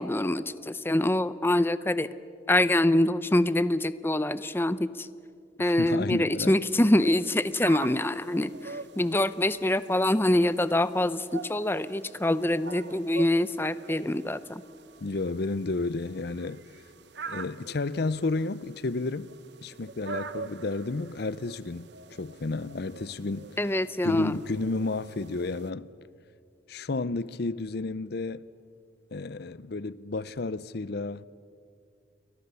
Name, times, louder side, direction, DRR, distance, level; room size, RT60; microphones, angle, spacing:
voice 1, 0.0-2.1 2.5-5.1 5.6-14.6 23.6-24.3, left 1 dB, 10° left, 0.6 m, -25 dB
voice 2, 5.6-6.5 15.0-16.6 17.3-19.3 19.6-23.6 24.0-25.9 26.7-28.4 29.1-31.3, left 3 dB, 55° left, 0.6 m, -32 dB
sound 1, 6.6-25.7, right 5 dB, 60° right, 1.0 m, -45 dB
29.5 x 22.5 x 7.0 m
head